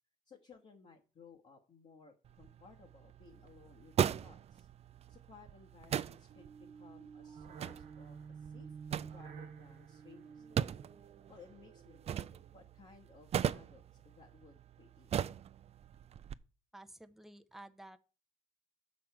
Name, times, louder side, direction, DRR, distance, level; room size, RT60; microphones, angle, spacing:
voice 1, 0.2-4.7 5.1-10.7 11.3-15.1, left 5 dB, 50° left, 1.2 m, -60 dB
sound 1, 2.2-16.3, right 9 dB, 45° right, 0.4 m, -40 dB
sound 2, 6.3-12.7, right 6 dB, 65° right, 1.0 m, -51 dB
voice 2, 16.7-18.0, right 1 dB, ahead, 0.6 m, -53 dB
7.5 x 6.4 x 4.7 m
cardioid pair, 100°, 15 cm